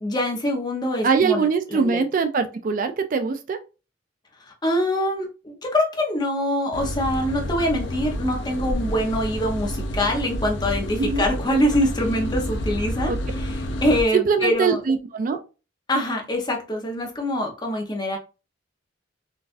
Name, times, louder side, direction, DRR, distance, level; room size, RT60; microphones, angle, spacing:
voice 1, 0.0-1.4 1.7-2.0 4.6-13.5 13.8-14.8 15.9-18.2, left 1 dB, 20° left, 1 dB, 0.8 m, -24 dB
voice 2, 1.0-3.6 11.0-11.3 13.1-13.2 14.1-15.4, right 5 dB, 45° right, 8 dB, 0.3 m, -22 dB
sound 1, 6.7-14.0, equal, 65° left, 0.5 m, -29 dB
3.9 x 2.4 x 2.5 m, 0.31 s
head